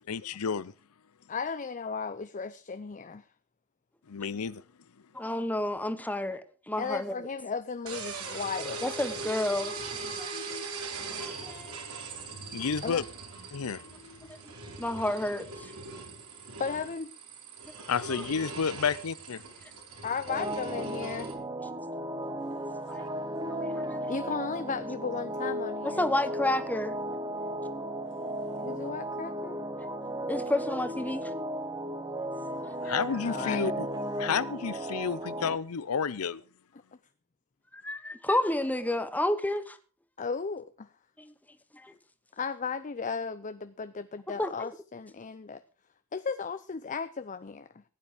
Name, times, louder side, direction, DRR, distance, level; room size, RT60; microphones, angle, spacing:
voice 1, 0.1-0.7 4.1-4.6 10.3-10.6 11.2-11.3 12.4-13.0 13.5-14.4 17.9-19.4 32.8-33.9 34.1-36.4, left 6 dB, 80° left, 0.6 m, -31 dB
voice 2, 1.3-3.2 6.8-8.9 12.8-13.0 16.6-17.1 20.0-21.3 24.1-26.1 28.6-29.6 33.2-33.6 40.2-40.9 42.4-45.6 46.1-47.8, left 5 dB, 35° left, 0.6 m, -35 dB
voice 3, 5.1-6.4 6.7-7.1 8.8-9.7 10.2-10.3 11.2-11.8 14.8-15.4 22.9-23.0 23.5-24.0 25.8-26.9 29.8-29.9 30.3-31.3 32.9-33.0 37.8-39.8 41.2-41.3 41.8-41.9 44.3-44.7, left 1 dB, 5° left, 1.1 m, -30 dB
sound 1, 7.9-21.3, right 4 dB, 75° right, 3.5 m, -40 dB
sound 2, 20.3-35.6, right 1 dB, 20° right, 1.0 m, -35 dB
16.0 x 9.7 x 5.1 m
head